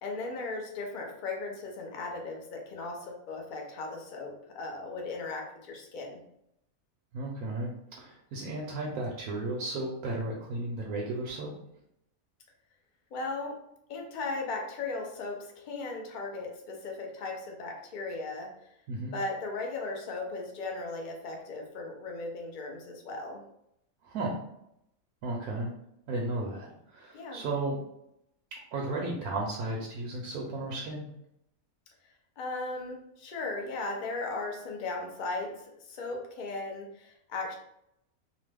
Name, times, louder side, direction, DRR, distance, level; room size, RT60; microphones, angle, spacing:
voice 1, 0.0-6.2 13.1-13.6 13.9-18.5 19.1-23.4 27.1-27.4 32.4-37.5, left 3 dB, 65° left, 1 dB, 0.4 m, -37 dB
voice 2, 7.1-11.5 18.9-19.2 24.0-24.4 25.2-25.7 26.1-27.8 28.5-31.1, right 2 dB, 80° right, -3 dB, 1.0 m, -34 dB
2.9 x 2.0 x 3.3 m, 0.78 s
omnidirectional pair, 1.5 m